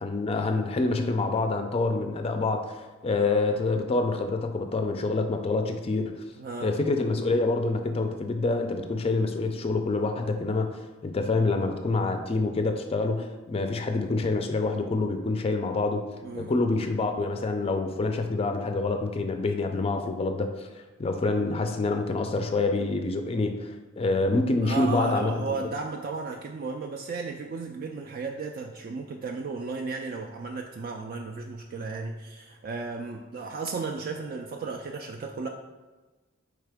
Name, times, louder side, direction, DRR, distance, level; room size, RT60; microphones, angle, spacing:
voice 1, 0.0-2.7 3.0-6.1 6.6-16.0 16.3-20.7 21.0-25.4, left 3 dB, 30° left, 6 dB, 0.4 m, -26 dB
voice 2, 6.4-6.8 16.2-16.6 24.6-35.5, right 4 dB, 50° right, 1 dB, 0.3 m, -34 dB
4.7 x 3.3 x 3.4 m, 1.2 s
head